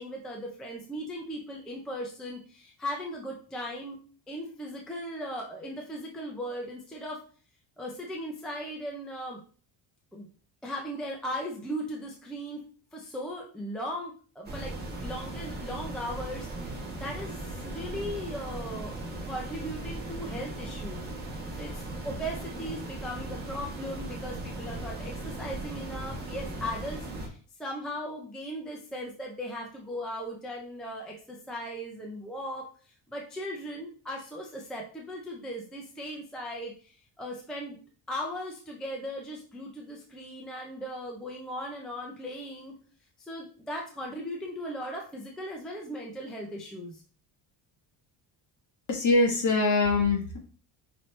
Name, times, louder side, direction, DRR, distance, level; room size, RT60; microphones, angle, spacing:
voice 1, 0.0-4.0 4.3-7.2 7.8-9.4 10.1-10.3 10.6-12.6 12.9-14.8 15.0-19.0 19.2-21.1 21.5-32.7 33.1-37.8 38.1-42.7 43.2-47.0, equal, ahead, -1 dB, 0.4 m, -38 dB
sound 1, 14.4-27.3, right 2 dB, 20° right, 1.2 m, -38 dB
voice 2, 48.9-50.4, left 3 dB, 40° left, 2 dB, 1.2 m, -23 dB
5.7 x 2.9 x 3.1 m, 0.40 s
cardioid pair, 170°, 47 cm